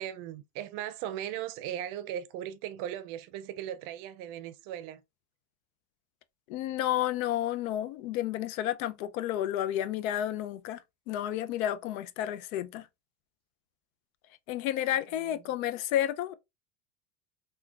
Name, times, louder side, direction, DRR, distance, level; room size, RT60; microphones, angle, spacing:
voice 1, 0.0-5.0 14.8-14.9 15.3-15.4, right 11 dB, 55° right, 0.5 m, -38 dB
voice 2, 6.5-12.9 14.5-16.3, left 12 dB, 85° left, 0.5 m, -31 dB
3.6 x 2.2 x 2.3 m
supercardioid pair, 140°, 40 cm